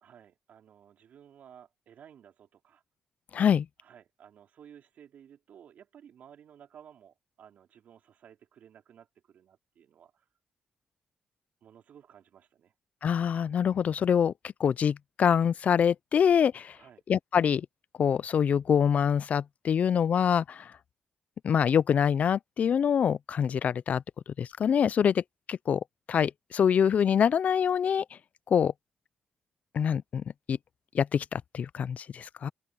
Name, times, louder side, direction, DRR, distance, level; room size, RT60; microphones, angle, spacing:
voice 1, 0.0-2.8 3.8-10.3 11.6-12.7 16.7-17.0, right 9 dB, 75° right, 3.1 m, -55 dB
voice 2, 3.3-3.7 13.0-16.8 17.1-17.7 18.0-20.7 21.4-24.0 24.4-25.2 25.5-25.8 26.1-28.0 28.5-28.7 29.7-30.6 30.9-32.5, left 8 dB, 65° left, 0.4 m, -25 dB
open air
cardioid pair, 65°, 3 cm